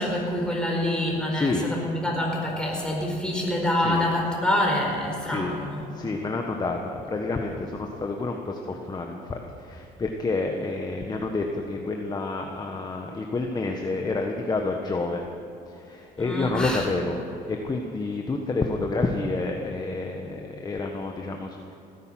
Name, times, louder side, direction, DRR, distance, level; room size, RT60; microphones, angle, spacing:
voice 1, 0.0-5.9 16.2-16.9, left 1 dB, 5° left, -1 dB, 4.7 m, -26 dB
voice 2, 1.3-1.7 3.8-4.1 5.3-5.6 5.9-15.2 15.7-17.2 17.4-21.7, left 3 dB, 25° left, 2 dB, 1.4 m, -29 dB
17.0 x 11.0 x 7.6 m, 2.9 s
cardioid pair, 110°, 17 cm